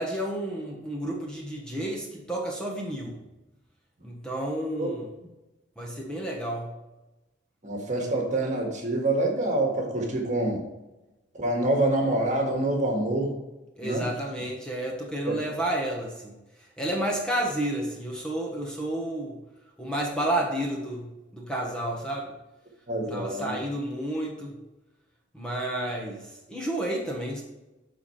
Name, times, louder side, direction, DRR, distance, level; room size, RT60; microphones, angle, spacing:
voice 1, 0.0-3.2 4.0-5.1 5.8-6.8 13.8-19.4 19.8-22.3 23.1-24.6 25.3-27.4, right 1 dB, 5° left, -2 dB, 1.3 m, -31 dB
voice 2, 7.6-10.6 11.3-13.3 13.8-14.1 22.9-23.6, right 1 dB, 40° right, 0 dB, 1.8 m, -26 dB
13.0 x 4.4 x 3.3 m, 1.0 s
head